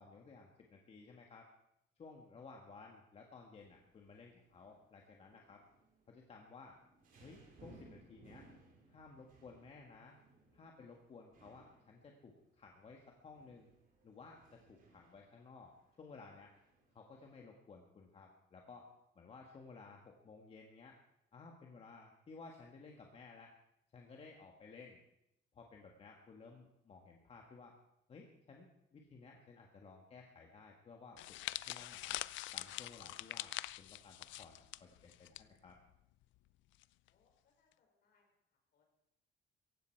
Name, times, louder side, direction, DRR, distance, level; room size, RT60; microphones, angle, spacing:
voice 1, 0.0-1.5 2.0-5.6 6.1-6.8 7.2-8.5 8.9-10.2 10.5-13.7 14.0-16.5 16.9-18.9 19.1-20.9 21.3-23.5 23.9-25.0 25.5-27.7 28.1-31.2 31.6-32.2 32.5-35.8, left 4 dB, 30° left, 1 dB, 1.6 m, -56 dB
sound 1, 3.6-17.4, right 2 dB, 45° right, 3.4 m, -65 dB
sound 2, 31.2-35.4 35.7-35.9 36.8-37.1, left 16 dB, 85° left, 0.5 m, -44 dB
voice 2, 37.1-38.8, left 4 dB, 55° left, 1 dB, 5.1 m, -77 dB
17.0 x 15.5 x 4.6 m, 0.81 s
cardioid pair, 160°, 19 cm